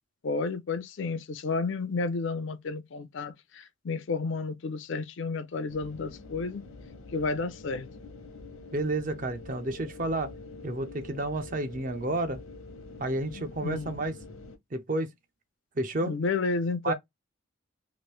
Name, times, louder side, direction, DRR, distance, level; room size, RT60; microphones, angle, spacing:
voice 1, 0.2-6.6 7.1-7.9 13.3-14.0 16.0-16.9, left 4 dB, 65° left, 0.5 m, -31 dB
sound 1, 5.7-14.6, left 3 dB, 80° left, 0.8 m, -46 dB
voice 2, 8.7-10.3 10.6-12.4 13.0-14.2 14.7-15.1 15.8-16.2 16.8-16.9, right 2 dB, 40° right, 0.5 m, -30 dB
3.1 x 2.5 x 3.1 m
head